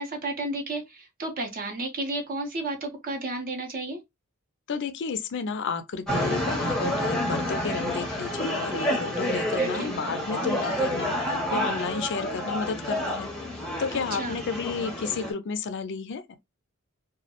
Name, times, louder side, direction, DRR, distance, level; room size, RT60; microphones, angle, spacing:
voice 1, 0.0-4.0 9.6-9.9 13.9-14.4, right 2 dB, 40° right, 0.5 m, -32 dB
voice 2, 4.7-16.2, left 5 dB, 55° left, 0.4 m, -32 dB
sound 1, 6.1-15.3, equal, 5° left, 0.6 m, -29 dB
2.2 x 2.0 x 2.8 m
head